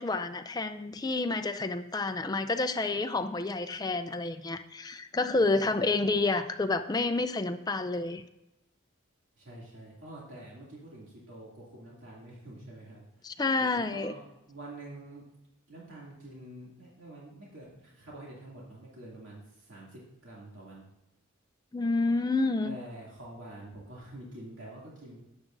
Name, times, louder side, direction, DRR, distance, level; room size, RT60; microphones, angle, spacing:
voice 1, 0.0-8.2 13.2-14.1 21.7-22.8, left 3 dB, 20° left, 10 dB, 0.4 m, -29 dB
voice 2, 9.4-13.0 13.6-15.2 15.7-20.8 22.6-25.2, right 1 dB, 75° right, -5 dB, 2.5 m, -47 dB
14.5 x 9.9 x 2.6 m, 0.91 s
head